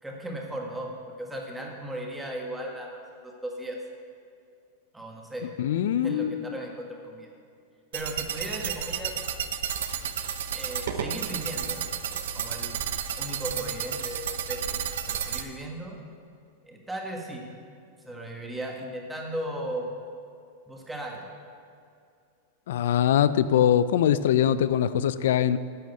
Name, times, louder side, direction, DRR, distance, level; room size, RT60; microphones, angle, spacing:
voice 1, 0.0-3.0 3.2-3.8 4.9-5.5 5.7-7.3 7.9-9.2 10.5-11.8 12.3-12.7 13.2-14.8 15.1-16.0 16.6-17.4 18.0-19.9 20.7-21.3, right 1 dB, 5° right, 0 dB, 1.6 m, -36 dB
voice 2, 5.6-6.6 22.7-25.6, left 10 dB, 75° left, 14 dB, 0.4 m, -23 dB
sound 1, 7.9-15.4, right 8 dB, 80° right, 0.8 m, -32 dB
10.5 x 6.4 x 8.2 m, 2.4 s
supercardioid pair, 150°, 0 cm